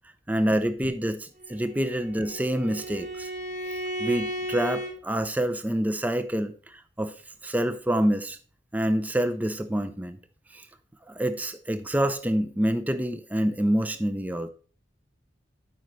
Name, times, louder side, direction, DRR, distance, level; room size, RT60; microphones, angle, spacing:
voice 1, 0.3-3.3 4.0-7.1 7.4-8.4 8.7-10.2 10.5-10.7 11.1-14.5, right 1 dB, 10° right, 0.5 m, -27 dB
Bowed string instrument, 1.4-4.9, right 1 dB, 50° right, 2.7 m, -34 dB
12.0 x 5.2 x 3.1 m
head